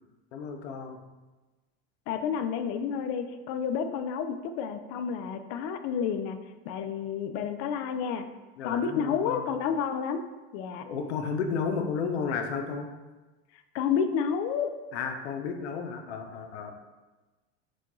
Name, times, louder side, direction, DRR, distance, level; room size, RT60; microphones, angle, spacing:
voice 1, 0.3-1.0 8.6-9.5 10.9-12.9 14.9-16.7, left 5 dB, 85° left, 5 dB, 0.7 m, -32 dB
voice 2, 2.1-6.4 6.7-8.3 8.6-10.2 10.5-10.9 13.7-14.7, left 7 dB, 50° left, 8 dB, 0.4 m, -30 dB
6.1 x 2.3 x 3.0 m, 1.2 s
supercardioid pair, 120°, 32 cm